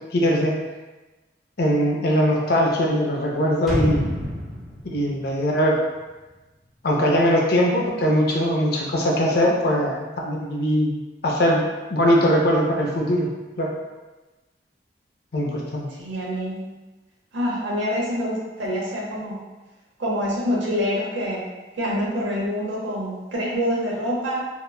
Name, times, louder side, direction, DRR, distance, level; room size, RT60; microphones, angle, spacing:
voice 1, 0.1-0.5 1.6-4.1 4.8-5.8 6.8-11.0 11.2-11.6 11.9-13.3 13.6-13.7 15.3-15.9, equal, 60° left, -1 dB, 0.5 m, -21 dB
sound 1, 3.7-6.5 6.8-6.9, equal, ahead, 0.4 m, -29 dB
voice 2, 16.0-16.7 17.3-19.4 20.0-21.4 21.7-24.5, equal, 90° right, -4 dB, 0.7 m, -26 dB
2.8 x 2.2 x 2.3 m, 1.2 s
head